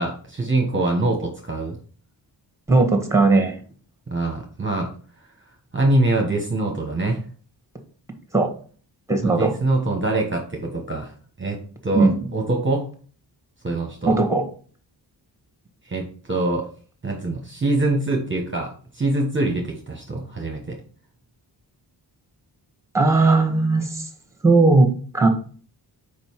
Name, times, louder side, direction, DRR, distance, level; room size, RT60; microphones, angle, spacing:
voice 1, 0.0-1.8 4.1-4.9 5.7-7.2 9.2-11.6 11.8-12.9 13.6-14.2 15.8-16.7 17.0-20.8, right 2 dB, 25° right, 1 dB, 1.2 m, -24 dB
voice 2, 2.7-3.6 8.3-8.5 9.1-9.5 11.9-12.1 14.1-14.4 22.9-24.1 24.4-24.9 25.1-25.3, right 3 dB, 5° right, 5 dB, 1.6 m, -17 dB
5.3 x 4.9 x 4.7 m, 0.42 s
wide cardioid pair, 85°, 44 cm